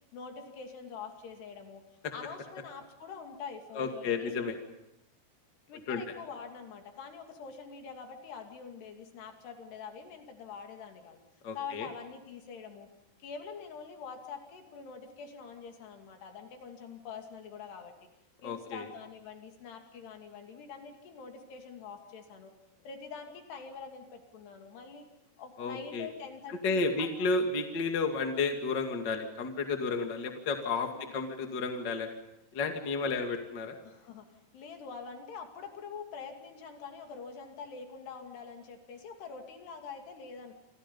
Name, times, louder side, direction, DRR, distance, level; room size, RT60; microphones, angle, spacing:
voice 1, 0.1-1.8 2.1-4.5 5.7-11.2 11.5-12.9 13.2-17.9 18.4-22.5 22.8-25.1 25.4-27.1 30.9-31.1 33.8-34.3 34.5-40.5, left 5 dB, 65° left, 4 dB, 4.5 m, -45 dB
voice 2, 3.7-4.6 5.9-6.0 11.4-11.9 18.4-18.8 25.6-26.1 26.5-32.1 32.5-33.8, left 4 dB, 35° left, 4 dB, 1.9 m, -32 dB
28.5 x 27.0 x 5.5 m, 0.86 s
omnidirectional pair, 5.3 m